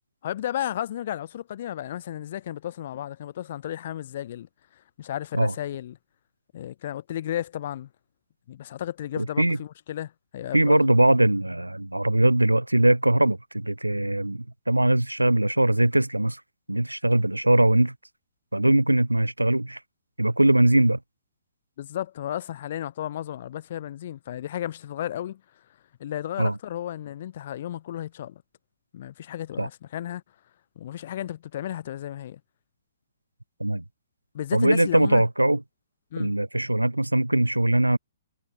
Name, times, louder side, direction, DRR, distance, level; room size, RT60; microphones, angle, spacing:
voice 1, 0.2-4.5 5.0-6.0 6.5-7.9 8.5-10.9 21.8-25.4 26.0-28.4 28.9-30.2 30.8-32.4 34.3-35.2 36.1-36.3, left 11 dB, 50° left, 0.8 m, -33 dB
voice 2, 9.2-9.6 10.5-16.4 16.7-17.9 18.5-19.8 20.2-21.0 26.4-26.6 29.6-29.7 33.6-33.8 34.5-35.6 36.2-38.0, right 1 dB, 90° right, 0.3 m, -21 dB
figure-of-eight pair, 120°, 0 cm